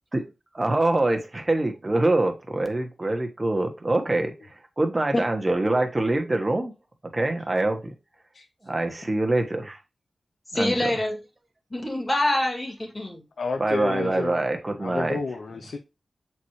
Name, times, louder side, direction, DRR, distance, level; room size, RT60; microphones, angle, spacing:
voice 1, 0.5-4.3 4.8-6.7 7.1-7.9 8.6-9.8 10.5-10.9 13.6-15.2, right 2 dB, 30° right, 1.4 m, -24 dB
voice 2, 10.5-11.2 11.7-13.2, left 1 dB, 30° left, 2.5 m, -25 dB
voice 3, 13.4-14.4 14.8-15.8, left 4 dB, 75° left, 0.7 m, -30 dB
7.1 x 4.4 x 3.2 m
cardioid pair, 65°, 0 cm